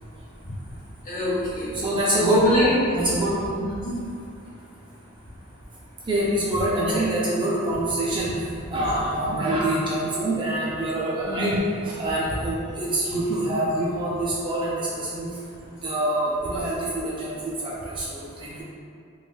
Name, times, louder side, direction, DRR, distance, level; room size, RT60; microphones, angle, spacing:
voice 1, 1.1-1.7 2.2-2.7 3.5-3.9 6.9-7.0 11.3-11.5, left 1 dB, 40° left, -9 dB, 1.0 m, -24 dB
voice 2, 1.7-2.5 2.9-3.4 6.1-8.4 8.7-11.6 11.8-15.3 15.8-18.6, right 1 dB, 25° right, -6 dB, 0.3 m, -25 dB
3.1 x 3.0 x 2.2 m, 2.5 s
head